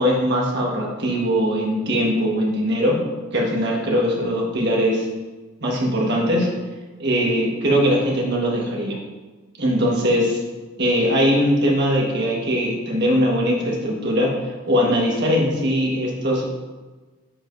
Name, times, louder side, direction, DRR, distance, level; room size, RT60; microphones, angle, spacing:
voice 1, 0.0-3.0 3.3-5.1 5.6-6.5 7.0-9.0 9.6-10.4 10.8-14.4 14.7-16.4, equal, 55° right, -2 dB, 1.5 m, -20 dB
10.0 x 4.9 x 2.6 m, 1.3 s
head